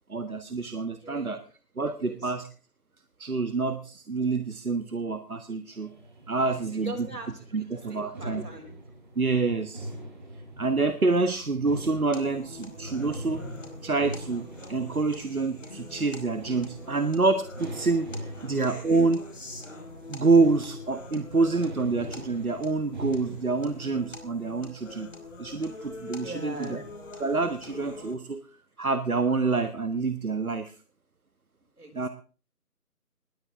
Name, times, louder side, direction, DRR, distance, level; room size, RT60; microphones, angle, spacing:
voice 1, 0.1-1.4 1.8-2.5 3.2-5.9 6.3-7.1 7.5-8.4 9.1-9.9 10.6-13.4 13.8-19.2 20.1-25.1 25.4-26.8 27.2-28.4 28.8-30.8 31.9-32.1, right 3 dB, 65° right, 10 dB, 1.5 m, -27 dB
voice 2, 1.0-1.4 1.9-2.3 6.3-8.7 10.2-10.5 18.3-18.7 26.2-26.8 31.8-32.1, right 1 dB, 85° right, 4 dB, 6.4 m, -42 dB
sound 1, 5.7-24.1, right 1 dB, 30° right, 4.3 m, -42 dB
sound 2, 12.1-28.1, left 3 dB, 55° left, 5.0 m, -44 dB
20.0 x 16.0 x 3.7 m, 0.39 s
figure-of-eight pair, 170°, 46 cm